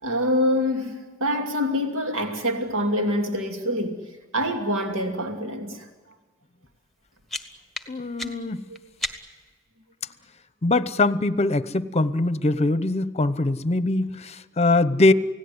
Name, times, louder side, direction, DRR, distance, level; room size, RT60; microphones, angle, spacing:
voice 1, 0.0-4.0 4.3-5.9 8.2-8.8, equal, 80° right, 2.7 m, -26 dB
sound 1, 6.8-9.5, left 1 dB, ahead, 1.5 m, -36 dB
voice 2, 7.9-8.6 10.6-15.1, left 2 dB, 30° left, 0.9 m, -22 dB
29.0 x 17.5 x 9.7 m
head